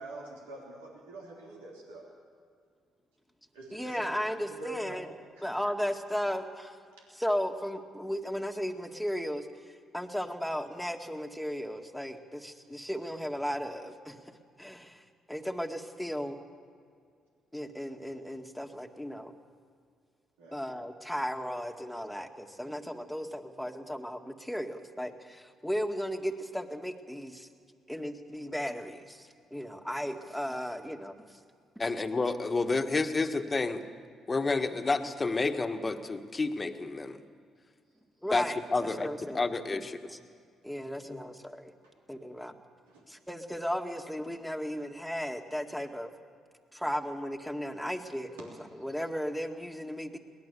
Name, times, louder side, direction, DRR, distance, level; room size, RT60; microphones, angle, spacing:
voice 1, 0.0-2.0 3.5-4.1 4.6-5.0 5.3-5.4 7.0-7.1 20.4-20.7 41.8-41.9 42.9-43.0 48.4-48.5, right 2 dB, 90° right, -2 dB, 3.3 m, -45 dB
voice 2, 3.7-5.0 5.4-6.8 7.2-14.3 14.6-16.4 17.5-19.4 20.5-27.5 27.9-31.4 38.2-39.4 39.7-39.8 40.1-40.2 40.6-41.7 42.1-42.5 43.1-46.1 46.7-48.5 48.8-50.2, equal, ahead, 4 dB, 2.1 m, -35 dB
voice 3, 31.8-33.8 34.3-37.2 38.3-38.4 38.7-40.0 41.1-41.2, left 3 dB, 30° left, 7 dB, 1.6 m, -30 dB
22.5 x 18.5 x 7.0 m, 2.2 s
hypercardioid pair, 50°, 0 cm